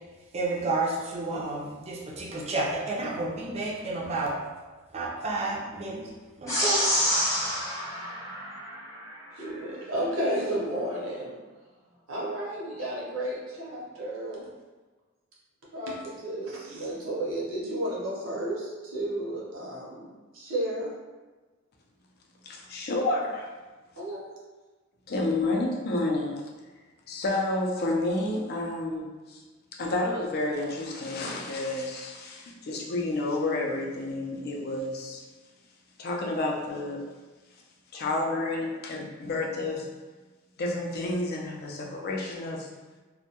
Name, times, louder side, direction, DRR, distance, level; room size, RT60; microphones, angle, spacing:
voice 1, 0.3-4.4 4.9-6.1 6.4-6.9, right 2 dB, 30° right, -2 dB, 0.4 m, -31 dB
sound 1, 6.5-9.1, equal, 15° left, 0.7 m, -28 dB
voice 2, 9.4-11.3 12.1-14.5 15.7-20.1 20.3-20.9 24.0-24.3, right 1 dB, 75° right, -5 dB, 0.7 m, -32 dB
voice 3, 22.4-23.5 25.1-26.4 27.1-29.4 29.8-35.2 36.0-37.0 37.9-39.9 40.6-42.7, left 2 dB, 50° left, 0 dB, 0.4 m, -30 dB
2.1 x 2.1 x 2.8 m, 1.3 s
head